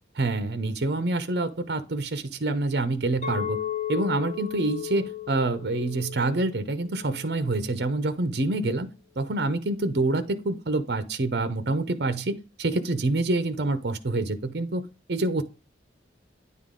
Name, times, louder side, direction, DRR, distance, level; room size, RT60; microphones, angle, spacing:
voice 1, 0.2-3.6 3.9-8.9 9.2-14.8 15.1-15.4, right 2 dB, 60° right, 10 dB, 0.6 m, -26 dB
Chink clink, 3.2-7.5, left 11 dB, 40° left, 1.0 m, -35 dB
9.6 x 3.7 x 3.7 m, 0.33 s
head